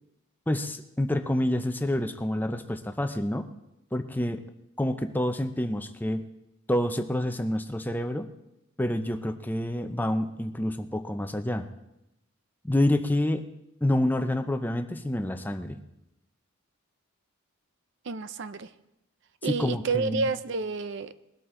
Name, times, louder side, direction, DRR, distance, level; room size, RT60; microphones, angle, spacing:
voice 1, 0.5-3.4 3.9-4.4 4.8-6.3 6.7-8.3 8.8-11.7 12.6-13.4 13.8-15.8 19.4-20.3, left 1 dB, 10° left, 7 dB, 0.6 m, -28 dB
voice 2, 18.0-18.7 19.4-21.1, right 4 dB, 55° right, 13 dB, 0.5 m, -30 dB
20.5 x 12.5 x 3.8 m, 0.89 s
head